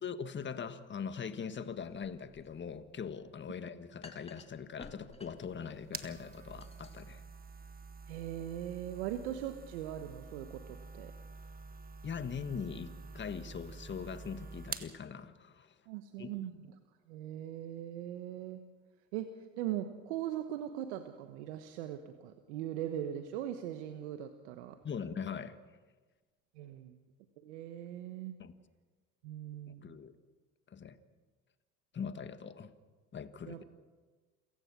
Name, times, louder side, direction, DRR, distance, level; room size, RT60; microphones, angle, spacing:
voice 1, 0.0-7.2 12.0-15.7 16.2-16.4 24.8-25.6 28.4-28.5 29.7-30.1 30.7-31.0 31.9-32.7 33.1-33.6, left 6 dB, 35° left, 11 dB, 1.6 m, -41 dB
sound 1, 1.8-9.3, left 3 dB, 20° left, 2.6 m, -58 dB
sound 2, 5.4-15.0, right 4 dB, 25° right, 1.5 m, -48 dB
voice 2, 8.1-11.1 15.9-16.5 17.1-18.6 19.1-24.8 26.5-27.0 27.4-28.3 29.2-29.9 33.5-33.6, right 11 dB, 85° right, 8 dB, 1.2 m, -40 dB
28.0 x 16.0 x 6.1 m, 1.3 s
hypercardioid pair, 70°, 34 cm